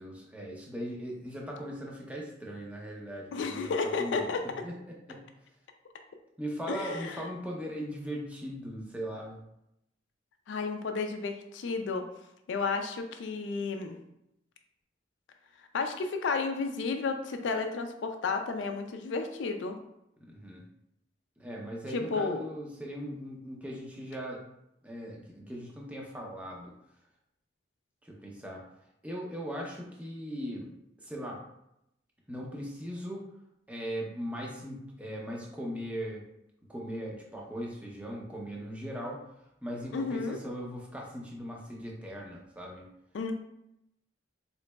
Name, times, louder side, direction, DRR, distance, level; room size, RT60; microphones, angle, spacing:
voice 1, 0.0-3.7 4.0-4.3 4.6-5.2 6.4-9.4 20.2-20.6 21.4-24.4 24.8-26.7 28.0-28.6 29.0-30.7 31.0-31.4 32.3-33.2 33.7-36.2 36.7-39.3 39.6-42.9, equal, 5° right, -2 dB, 0.6 m, -39 dB
voice 2, 3.3-4.4 6.7-7.2 10.5-12.1 12.5-14.0 15.7-19.8 21.9-22.5 39.9-40.4 43.1-43.3, left 4 dB, 80° left, 5 dB, 0.4 m, -32 dB
3.8 x 3.0 x 2.2 m, 0.81 s
head